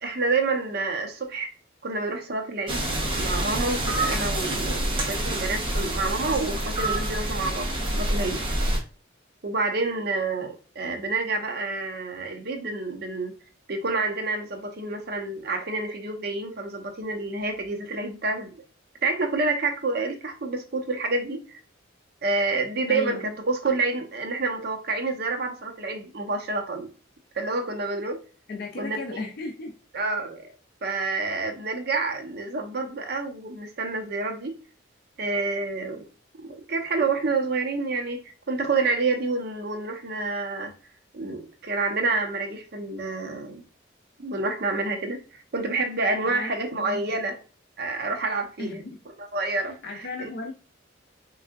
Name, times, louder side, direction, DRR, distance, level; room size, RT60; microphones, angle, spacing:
voice 1, 0.0-1.5 1.8-7.7 7.9-8.4 9.4-13.3 13.7-18.5 19.0-21.6 22.2-26.9 27.3-28.2 28.8-29.2 29.9-30.5 30.8-34.6 35.2-36.1 36.4-40.7 41.1-43.6 44.2-47.4 47.8-48.8 49.2-50.3, right 3 dB, 55° right, 0.8 m, -28 dB
sound 1, 2.7-8.8, right 1 dB, 25° right, 0.9 m, -27 dB
voice 2, 22.9-23.3 28.5-29.7 46.2-47.2 48.6-49.0 49.8-50.5, left 3 dB, 50° left, 0.4 m, -35 dB
3.5 x 3.2 x 2.3 m
head